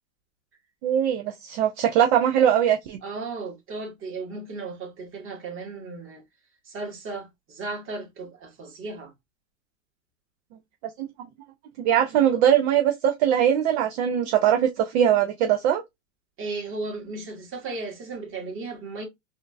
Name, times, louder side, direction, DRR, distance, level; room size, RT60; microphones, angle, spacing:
voice 1, 0.8-3.0 11.8-15.8, right 10 dB, 55° right, 0.7 m, -21 dB
voice 2, 3.0-6.2 6.6-9.1 16.4-19.0, right 3 dB, 30° right, 1.7 m, -35 dB
3.6 x 2.6 x 2.3 m
hypercardioid pair, 110°, 41 cm